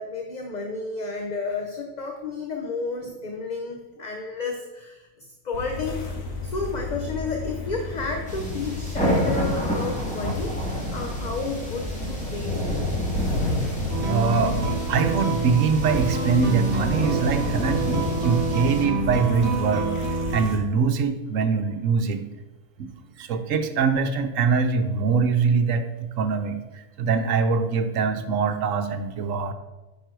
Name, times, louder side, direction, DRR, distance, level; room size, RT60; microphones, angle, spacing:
voice 1, 0.0-5.1 5.4-6.0 6.4-12.6, left 3 dB, 35° left, 2 dB, 0.8 m, -31 dB
sound 1, 5.5-20.6, left 3 dB, 75° left, 1.9 m, -34 dB
sound 2, 8.3-18.8, left 1 dB, 5° left, 2.1 m, -29 dB
sound 3, 13.9-20.5, right 2 dB, 55° right, 1.3 m, -28 dB
voice 2, 14.1-14.6 14.9-22.2 22.8-22.9 23.2-25.8 26.2-29.5, right 5 dB, 70° right, 8 dB, 1.1 m, -23 dB
9.7 x 5.5 x 4.6 m, 1.1 s
omnidirectional pair, 1.4 m